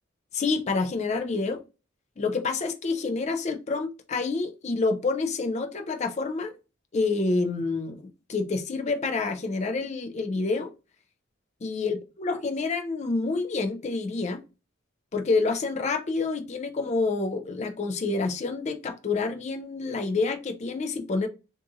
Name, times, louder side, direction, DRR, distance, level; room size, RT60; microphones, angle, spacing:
voice 1, 0.3-1.6 2.2-6.6 6.9-10.7 11.6-14.4 15.1-21.3, left 3 dB, 35° left, 0.4 m, -28 dB
2.6 x 2.5 x 3.7 m
head